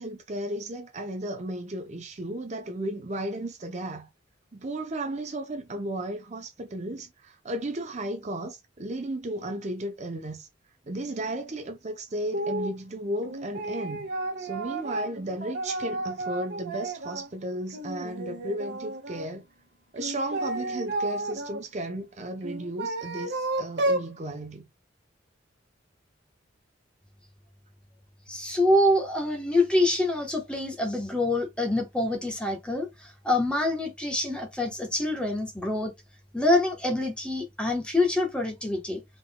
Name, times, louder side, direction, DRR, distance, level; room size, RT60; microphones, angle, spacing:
voice 1, 0.0-4.1 4.5-10.5 10.9-14.1 14.4-19.4 19.9-24.6, right 1 dB, 35° right, 0.6 m, -34 dB
sound 1, 12.3-12.8 13.2-17.3 17.7-19.3 20.0-21.6 22.4-24.1, right 2 dB, 65° right, 1.4 m, -32 dB
voice 2, 28.3-35.9 36.3-39.0, left 1 dB, 5° left, 1.0 m, -26 dB
3.8 x 3.7 x 2.2 m
head